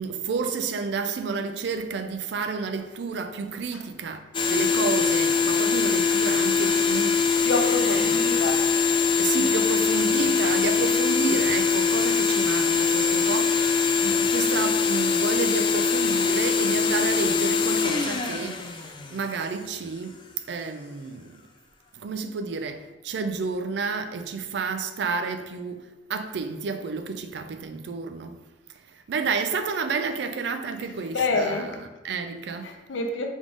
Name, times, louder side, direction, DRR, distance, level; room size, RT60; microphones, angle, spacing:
voice 1, 0.0-4.2 4.5-7.2 7.9-8.3 9.2-18.7 19.1-20.2 20.5-21.4 21.9-28.4 28.9-32.8, right 4 dB, 65° right, 0.4 m, -30 dB
sound 1, 4.3-19.6, left 5 dB, 25° left, 0.3 m, -23 dB
voice 2, 7.4-8.6 31.1-31.7 32.6-33.3, left 3 dB, 85° left, 0.6 m, -27 dB
3.5 x 3.4 x 3.7 m
head